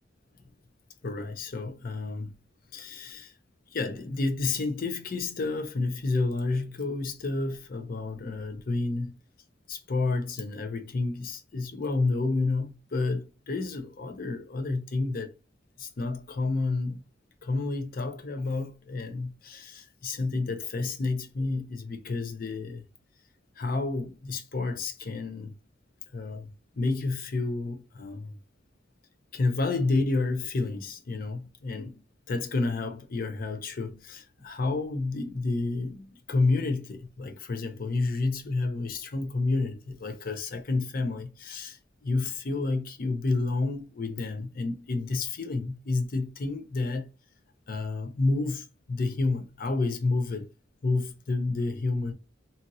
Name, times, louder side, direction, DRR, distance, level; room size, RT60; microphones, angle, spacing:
voice 1, 1.0-2.3 2.7-3.3 3.7-9.2 9.7-15.3 15.8-17.0 17.4-22.8 23.6-25.5 26.1-26.5 26.8-28.4 29.3-31.9 32.3-47.1 47.7-50.5 50.8-52.1, left 3 dB, 50° left, 0.5 m, -30 dB
2.8 x 2.6 x 2.6 m
head